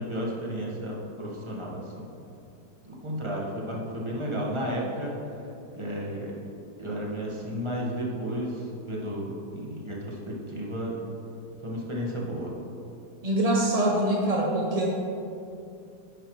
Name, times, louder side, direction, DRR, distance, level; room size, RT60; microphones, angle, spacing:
voice 1, 0.0-2.1 2.8-5.1 5.7-6.3 6.8-11.0 11.6-12.5, equal, 15° right, -4 dB, 1.3 m, -33 dB
voice 2, 13.2-14.9, right 1 dB, 45° right, -2 dB, 0.5 m, -24 dB
9.9 x 8.8 x 3.2 m, 2.6 s
omnidirectional pair, 2.0 m